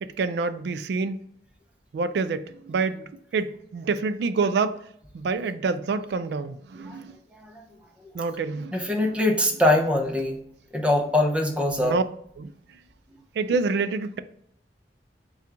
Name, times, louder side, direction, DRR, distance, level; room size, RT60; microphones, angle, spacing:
voice 1, 0.0-1.2 1.9-3.0 3.3-4.8 5.1-7.2 8.1-9.1 11.8-12.0 12.4-12.5 13.4-14.2, right 4 dB, 65° right, 0.3 m, -27 dB
voice 2, 8.7-10.4 10.7-11.9, left 1 dB, 5° right, 0.5 m, -22 dB
4.3 x 2.3 x 3.7 m
head